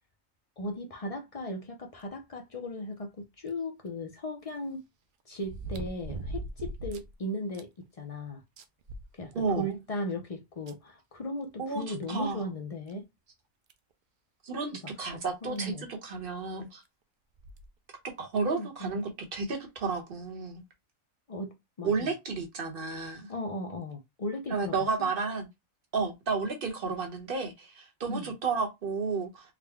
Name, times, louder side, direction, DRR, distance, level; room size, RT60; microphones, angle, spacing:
voice 1, 0.6-4.8 5.3-8.4 9.1-13.1 15.0-15.9 18.4-19.0 21.3-22.1 23.3-25.1 28.1-28.3, left 1 dB, 50° left, 0.4 m, -37 dB
sound 1, 3.5-3.6 5.4-7.1 7.5-7.6 8.1-8.2 8.6-9.7 10.7-10.8 12.2-12.3 12.9-13.0 13.7-13.9 15.2-15.3 15.6-15.7 17.4-17.7 18.4-18.5, right 2 dB, 70° right, 0.5 m, -39 dB
voice 2, 9.3-9.7 11.6-12.4 14.4-16.8 18.0-20.6 21.8-23.3 24.5-25.5 25.9-29.5, right 4 dB, 45° right, 1.1 m, -32 dB
3.6 x 2.2 x 3.5 m
omnidirectional pair, 1.4 m